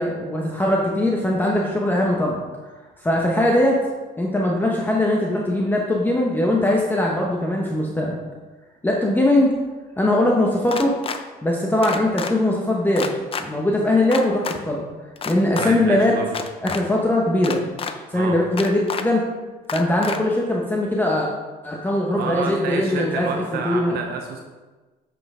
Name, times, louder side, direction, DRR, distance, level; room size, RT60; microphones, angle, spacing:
voice 1, 0.0-2.4 3.0-3.8 4.2-8.2 8.8-9.5 10.0-11.0 11.4-13.1 13.4-14.8 15.2-16.1 16.6-17.6 18.1-19.2 19.7-21.3 21.6-24.0, left 1 dB, 10° left, -2 dB, 1.0 m, -20 dB
sound 1, 10.7-11.2 11.8-12.3 12.9-13.4 14.1-14.6 15.2-15.7 16.3-16.8 17.4-17.9 18.6-19.0 19.7-20.2, left 6 dB, 35° left, 0.6 m, -28 dB
voice 2, 15.6-16.3 18.1-18.4 22.2-24.4, right 5 dB, 70° right, 3 dB, 0.9 m, -29 dB
7.7 x 5.9 x 3.6 m, 1.2 s
cardioid pair, 110°, 17 cm